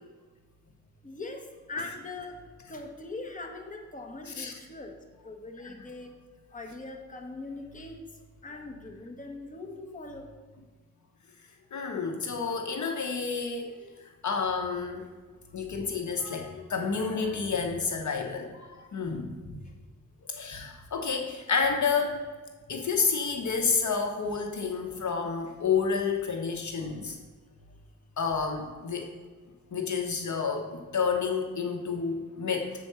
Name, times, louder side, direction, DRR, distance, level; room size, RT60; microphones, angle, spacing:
voice 1, 1.0-1.4 1.7-2.4 2.7-4.9 5.2-6.1 6.5-10.3, left 2 dB, 25° left, 3 dB, 1.2 m, -41 dB
voice 2, 11.7-15.0 15.5-19.6 20.3-22.2 22.7-27.2 28.2-29.1 29.7-32.7, left 5 dB, 60° left, 3 dB, 1.0 m, -30 dB
6.9 x 4.6 x 6.8 m, 1.4 s
cardioid pair, 80°, 33 cm